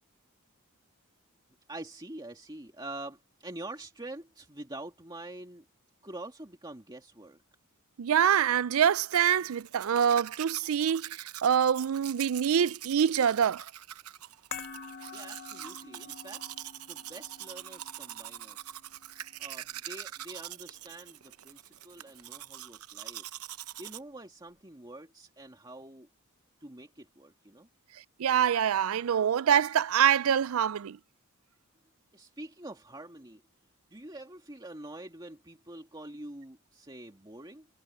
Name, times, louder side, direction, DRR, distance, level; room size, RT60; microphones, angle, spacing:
voice 1, 1.7-5.6 6.0-7.4 15.1-16.4 16.9-18.8 19.4-23.3 23.8-26.1 26.6-27.7 32.1-33.4 33.9-37.7, right 2 dB, 20° right, 2.1 m, -45 dB
voice 2, 8.0-13.6 28.2-31.0, right 8 dB, 65° right, 0.4 m, -25 dB
Domestic sounds home sounds, 9.1-24.0, right 12 dB, 85° right, 0.9 m, -44 dB
sound 1, 14.5-20.9 21.2-21.3, left 6 dB, 55° left, 1.8 m, -48 dB
head